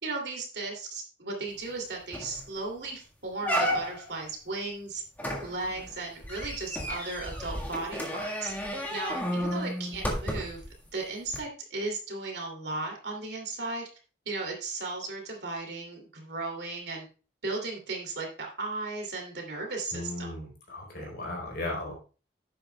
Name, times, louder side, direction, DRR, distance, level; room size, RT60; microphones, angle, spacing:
voice 1, 0.0-5.0 5.4-8.5 8.9-10.6 10.9-13.9 14.3-17.0 17.4-20.3, right 3 dB, 60° right, 1 dB, 2.8 m, -36 dB
sound 1, 1.7-1.8 2.1-2.4 2.8-2.9 3.4-4.2 5.2-10.7 11.3-11.4, equal, 10° left, 1.6 m, -32 dB
voice 2, 19.9-21.9, left 1 dB, 55° left, 0 dB, 4.0 m, -36 dB
11.0 x 9.3 x 2.3 m, 0.35 s
head